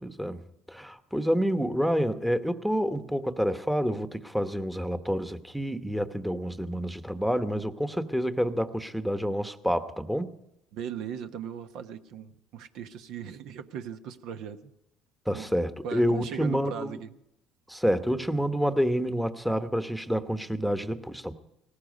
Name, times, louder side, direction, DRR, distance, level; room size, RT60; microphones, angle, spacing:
voice 1, 0.0-0.4 0.7-10.3 15.3-17.0 17.7-21.3, equal, ahead, 10 dB, 1.0 m, -28 dB
voice 2, 10.7-14.7 15.3-15.5 15.8-17.2, right 8 dB, 75° right, 9 dB, 1.0 m, -38 dB
18.5 x 14.5 x 5.3 m, 0.83 s
supercardioid pair, 90°, 0 cm